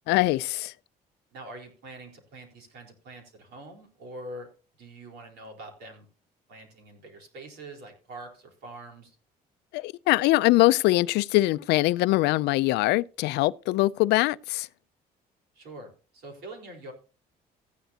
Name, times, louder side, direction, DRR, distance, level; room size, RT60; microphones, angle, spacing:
voice 1, 0.1-0.7 9.7-14.7, left 18 dB, 85° left, 0.4 m, -23 dB
voice 2, 1.3-4.5 4.8-6.1 6.5-9.1 15.5-16.9, right 1 dB, 75° right, 4.1 m, -44 dB
14.5 x 10.0 x 2.8 m
cardioid pair, 110°, 17 cm